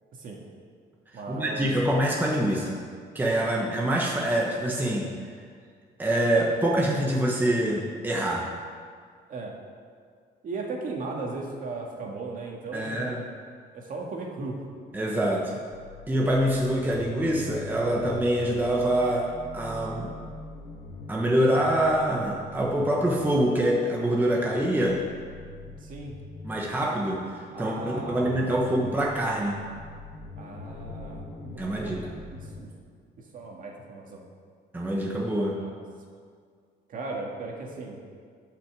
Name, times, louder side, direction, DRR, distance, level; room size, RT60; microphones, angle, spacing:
voice 1, 0.1-0.4 1.1-1.7 9.3-9.5 10.4-13.1 13.7-14.6 25.8-26.2 27.5-28.8 30.4-31.9 32.3-32.7 33.3-34.2 35.4-35.8 36.9-38.0, right 3 dB, 50° right, -1 dB, 2.0 m, -37 dB
voice 2, 1.3-2.8 3.1-5.1 6.0-8.5 12.7-13.2 14.9-15.6 16.1-20.1 21.1-25.0 26.4-29.6 31.6-32.1 34.7-35.5, right 1 dB, 10° right, -3 dB, 1.1 m, -25 dB
sound 1, 15.7-32.6, left 3 dB, 70° left, 1.7 m, -43 dB
12.5 x 5.9 x 7.5 m, 2.1 s
cardioid pair, 160°, 18 cm